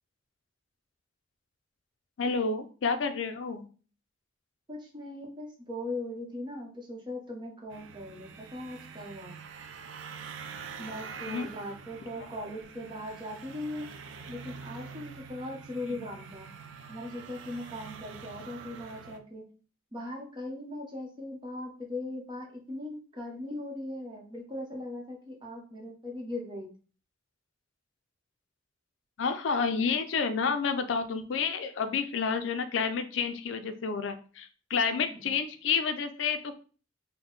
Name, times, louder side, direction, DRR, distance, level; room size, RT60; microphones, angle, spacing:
voice 1, 2.2-3.7 11.2-11.5 15.9-16.0 29.2-36.6, left 5 dB, 75° left, 9 dB, 0.4 m, -30 dB
voice 2, 4.7-9.4 10.8-13.9 14.3-16.5 16.9-19.4 19.9-26.7 34.9-35.4, left 1 dB, 25° right, -1 dB, 0.8 m, -39 dB
sound 1, 7.7-19.2, right 6 dB, 80° right, 0.4 m, -45 dB
3.7 x 2.1 x 3.8 m, 0.39 s
head